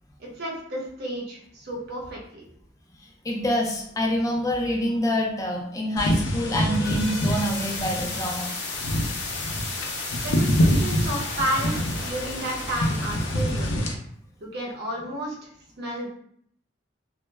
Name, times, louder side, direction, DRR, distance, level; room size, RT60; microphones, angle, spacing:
voice 1, 0.2-2.4 10.2-13.8 14.4-15.3 15.8-16.1, right 1 dB, 60° right, -2 dB, 0.7 m, -32 dB
voice 2, 3.2-8.5, equal, 20° left, 0 dB, 0.3 m, -26 dB
sound 1, 6.0-13.9, equal, 85° left, 0.5 m, -26 dB
sound 2, 6.6-13.7, left 3 dB, 60° left, 0.8 m, -35 dB
2.1 x 2.0 x 3.2 m, 0.68 s
head